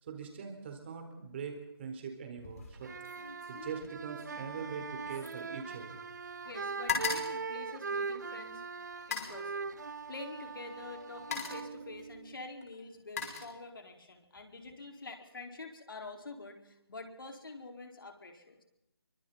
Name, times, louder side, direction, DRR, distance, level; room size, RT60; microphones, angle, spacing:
voice 1, 0.0-6.0, right 6 dB, 25° right, 4 dB, 4.3 m, -42 dB
sound 1, 2.4-2.8 3.0-6.2 6.5-8.4 9.0-9.4 10.5-10.6 11.0-11.8 12.6-14.0 14.4-14.7, left 5 dB, 35° left, 5.6 m, -40 dB
sound 2, 2.7-12.5, right 5 dB, 45° right, 0.8 m, -41 dB
voice 2, 6.4-8.6 9.1-9.7 10.1-18.6, left 3 dB, 60° left, 3 dB, 4.4 m, -46 dB
28.5 x 24.5 x 4.1 m, 0.83 s
figure-of-eight pair, 160°, 13 cm